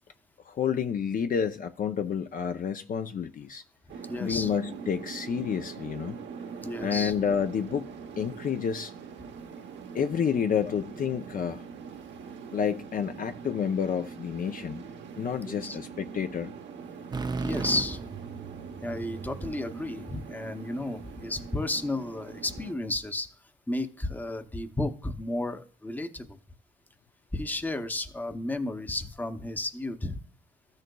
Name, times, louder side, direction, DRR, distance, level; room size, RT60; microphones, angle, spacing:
voice 1, 0.5-3.6 4.2-6.2 6.8-7.9 8.2-8.9 9.9-11.6 12.5-14.9 15.2-16.5, left 7 dB, 45° left, 0.5 m, -29 dB
sound 1, 3.9-22.7, right 6 dB, 65° right, 0.9 m, -43 dB
voice 2, 4.1-4.5 6.6-7.1 15.5-15.8 17.4-18.0 18.8-23.3 23.7-26.4 27.3-30.2, left 2 dB, 10° left, 0.7 m, -33 dB
sound 2, 17.1-20.9, right 4 dB, 20° right, 0.4 m, -36 dB
13.5 x 6.4 x 2.3 m
cardioid pair, 90°, 20 cm